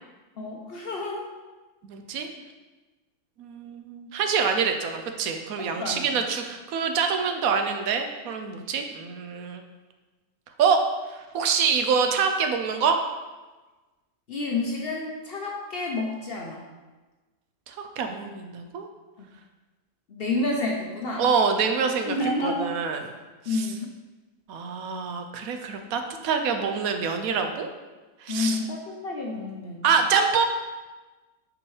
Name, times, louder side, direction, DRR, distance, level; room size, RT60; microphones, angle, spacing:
voice 1, 0.4-1.3 5.6-6.1 14.3-16.6 20.1-21.3 22.1-22.8 23.5-23.9 28.3-29.9, left 2 dB, 55° left, 0 dB, 0.7 m, -29 dB
voice 2, 1.8-2.3 3.4-9.6 10.6-10.8 11.1-13.0 17.7-18.9 21.2-23.1 23.5-23.7 24.5-27.7 28.2-28.6 29.8-30.4, right 6 dB, 75° right, 5 dB, 1.0 m, -26 dB
5.6 x 5.2 x 3.2 m, 1.2 s
omnidirectional pair, 1.5 m